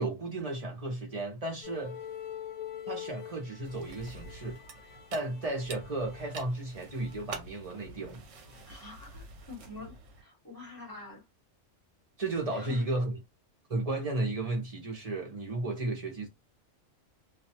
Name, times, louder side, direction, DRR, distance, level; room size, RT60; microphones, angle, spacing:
voice 1, 0.0-2.0 2.9-4.6 5.1-8.2 12.2-13.2 13.7-16.3, right 2 dB, 35° right, 0.7 m, -34 dB
sound 1, 1.6-8.0 8.3-8.6, left 10 dB, 40° left, 0.7 m, -45 dB
sound 2, 3.6-10.2, right 4 dB, 70° right, 1.0 m, -48 dB
voice 2, 8.7-11.2 12.5-12.9, left 3 dB, 15° left, 1.3 m, -46 dB
2.4 x 2.2 x 2.8 m
omnidirectional pair, 1.3 m